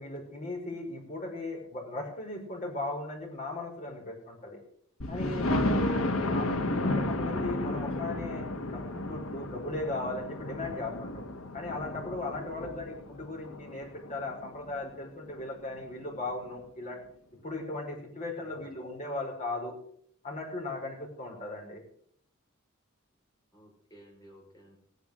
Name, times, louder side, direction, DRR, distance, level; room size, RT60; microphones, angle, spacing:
voice 1, 0.0-4.6 5.1-8.4 8.7-11.2 11.5-17.0 17.4-19.8 20.2-21.8, left 2 dB, 35° left, -1 dB, 5.2 m, -37 dB
Thunder, 5.0-14.7 15.3-15.4 15.8-15.9 16.1-16.2, left 1 dB, 75° left, 1.4 m, -33 dB
voice 2, 12.6-12.9 18.4-18.7 23.5-24.8, equal, 20° left, -2 dB, 5.1 m, -54 dB
16.0 x 9.6 x 6.7 m, 0.62 s
head